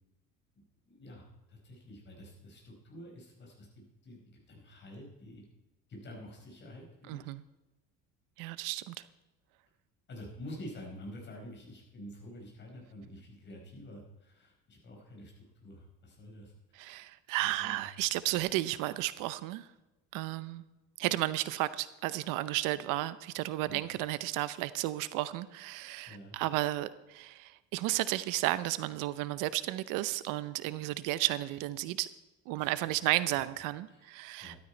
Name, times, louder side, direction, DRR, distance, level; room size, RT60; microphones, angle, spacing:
voice 1, 0.9-5.4 5.9-7.3 10.1-16.5 16.8-17.0 17.4-17.8 23.7-23.9 26.1-26.4 32.6-33.0 33.9-34.6, left 1 dB, 35° left, 4.6 m, -48 dB
voice 2, 7.1-7.4 8.4-9.0 16.8-19.7 20.1-20.6 21.0-32.1 32.5-34.5, right 16 dB, 70° right, 0.7 m, -33 dB
13.5 x 12.5 x 4.4 m
cardioid pair, 160°, 33 cm